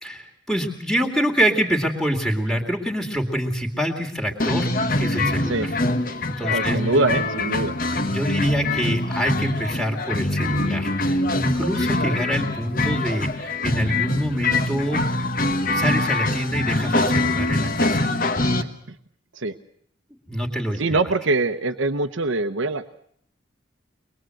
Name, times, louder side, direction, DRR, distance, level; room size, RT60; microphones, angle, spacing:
voice 1, 0.0-5.8 6.4-6.8 8.0-18.1 20.3-21.0, equal, ahead, 2 dB, 2.3 m, -26 dB
sound 1, 4.4-18.6, left 2 dB, 45° left, 1.3 m, -24 dB
voice 2, 6.4-7.8 18.6-18.7 19.3-19.5 20.8-22.8, right 2 dB, 80° right, 6 dB, 1.0 m, -23 dB
24.0 x 21.0 x 7.8 m, 0.64 s
head